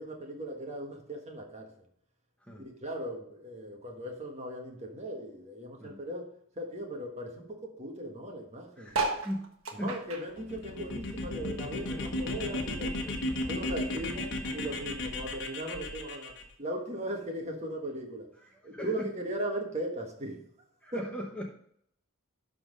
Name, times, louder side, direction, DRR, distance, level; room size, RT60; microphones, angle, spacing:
voice 1, 0.0-1.7 2.6-6.3 6.6-8.9 9.8-13.0 13.4-18.3 18.6-20.4 20.9-21.0, right 1 dB, 30° right, 2 dB, 1.4 m, -38 dB
voice 2, 8.8-10.0 11.9-12.1 13.0-13.2 18.4-19.1 20.8-21.5, equal, 5° left, 0 dB, 0.8 m, -39 dB
sound 1, 8.9-11.6 12.0-13.5 14.0-14.1 14.3-14.4 14.5-14.9 15.7-15.8, right 3 dB, 70° right, 1.4 m, -36 dB
sound 2, 10.4-16.4, left 1 dB, 55° left, 1.2 m, -35 dB
11.5 x 3.9 x 5.2 m, 0.68 s
head